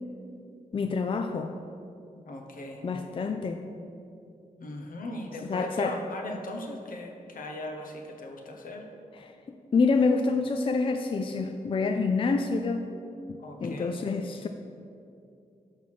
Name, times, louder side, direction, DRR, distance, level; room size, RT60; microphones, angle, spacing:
voice 1, 0.7-1.5 2.8-3.6 5.4-6.0 9.1-9.3 9.7-12.8 13.3-14.5, left 4 dB, 40° left, 5 dB, 0.4 m, -27 dB
voice 2, 2.3-2.9 4.6-8.9 13.4-14.0, left 1 dB, 70° left, 2 dB, 0.9 m, -38 dB
5.7 x 4.6 x 6.0 m, 2.6 s
cardioid pair, 75°, 15 cm